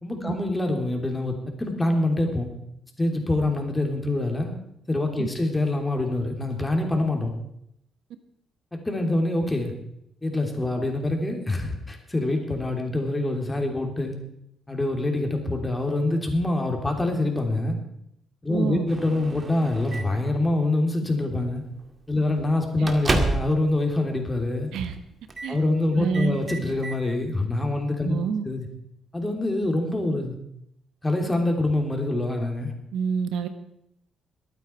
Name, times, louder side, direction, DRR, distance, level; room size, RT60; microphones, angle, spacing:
voice 1, 0.0-2.5 3.0-4.5 4.9-7.3 8.7-9.7 10.2-14.2 14.7-17.8 18.4-21.6 22.1-24.7 25.5-28.2 28.4-28.6 29.1-30.4 31.0-32.7, left 2 dB, 15° left, 3 dB, 3.2 m, -25 dB
voice 2, 18.5-18.9 22.8-22.9 24.7-25.0 25.4-25.6 26.0-26.4 28.0-28.4 32.9-33.5, right 6 dB, 85° right, 10 dB, 1.2 m, -27 dB
Microwave oven, 18.9-20.3 21.2-21.4 21.8-21.9 22.3-23.6 24.0-24.1 24.7-25.0 25.3-25.6 25.9-27.0, right 2 dB, 30° right, 2.0 m, -30 dB
22.0 x 9.1 x 4.6 m, 0.76 s
cardioid pair, 90°, 0 cm